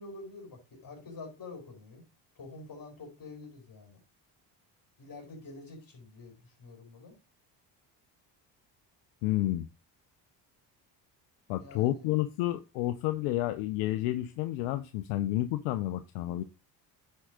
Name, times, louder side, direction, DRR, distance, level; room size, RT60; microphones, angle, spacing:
voice 1, 0.0-2.0 2.4-4.0 5.0-7.2 11.6-12.1, left 3 dB, 45° left, 3 dB, 4.5 m, -47 dB
voice 2, 9.2-9.7 11.5-16.4, left 15 dB, 85° left, 10 dB, 0.7 m, -30 dB
9.9 x 4.7 x 3.7 m, 0.28 s
supercardioid pair, 65°, 48 cm